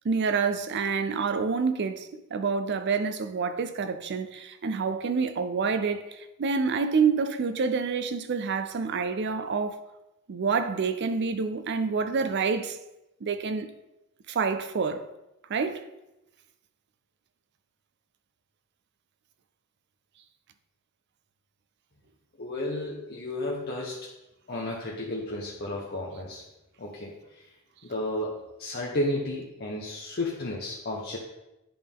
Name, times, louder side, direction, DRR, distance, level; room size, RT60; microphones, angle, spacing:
voice 1, 0.0-9.9 10.3-12.8 13.2-13.7 14.3-15.1 15.5-15.9, right 5 dB, 50° right, 0.4 m, -27 dB
voice 2, 22.4-24.0 24.5-26.4 26.8-27.1 27.8-31.2, left 1 dB, 45° left, 0.8 m, -32 dB
10.0 x 3.7 x 3.6 m
head